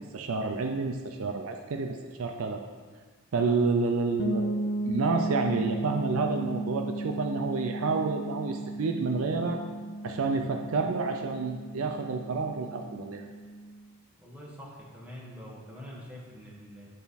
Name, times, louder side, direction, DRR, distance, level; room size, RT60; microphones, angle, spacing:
voice 1, 0.0-2.6 3.3-9.6 10.0-13.2, right 4 dB, 65° right, 4 dB, 0.5 m, -29 dB
sound 1, 4.2-13.9, right 1 dB, 50° left, 0.5 m, -35 dB
voice 2, 14.2-16.9, equal, 5° right, -5 dB, 1.3 m, -45 dB
10.5 x 3.5 x 4.1 m, 1.5 s
head